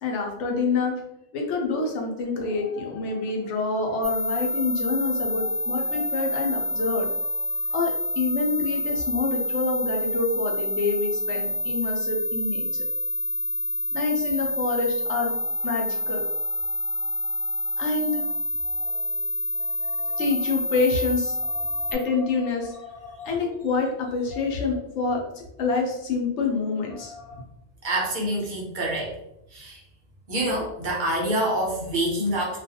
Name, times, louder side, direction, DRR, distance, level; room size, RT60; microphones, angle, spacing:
voice 1, 0.0-1.0 1.3-12.7 13.9-19.3 19.5-27.4, left 4 dB, 85° left, 1 dB, 0.9 m, -28 dB
sound 1, 4.0-21.9, left 1 dB, 5° left, 0.4 m, -28 dB
voice 2, 27.8-29.1 29.5-29.8 30.3-32.6, right 1 dB, 50° right, -3 dB, 0.7 m, -26 dB
2.4 x 2.3 x 2.7 m, 0.81 s
omnidirectional pair, 1.2 m